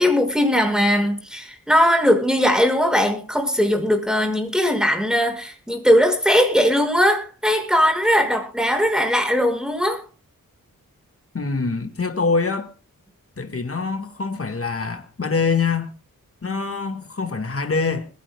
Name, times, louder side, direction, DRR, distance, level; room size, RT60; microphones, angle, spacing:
voice 1, 0.0-10.0, equal, ahead, 6.0 m, -19 dB
voice 2, 11.3-12.7 13.4-15.9 16.4-18.1, left 4 dB, 40° left, 1.9 m, -24 dB
21.0 x 16.5 x 2.3 m
cardioid pair, 40°, 34 cm